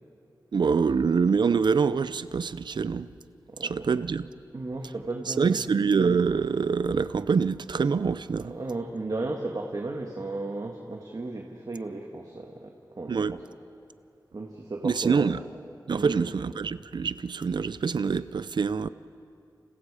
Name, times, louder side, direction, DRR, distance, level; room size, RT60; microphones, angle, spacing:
voice 1, 0.5-3.1 3.6-4.3 5.3-8.5 13.1-13.3 14.8-15.4 15.9-18.9, right 5 dB, 85° right, 0.6 m, -25 dB
voice 2, 3.5-4.0 4.5-5.6 8.3-13.4 14.3-15.3 15.9-16.3, right 2 dB, 55° right, 1.9 m, -35 dB
30.0 x 28.5 x 5.0 m
wide cardioid pair, 60°, 8 cm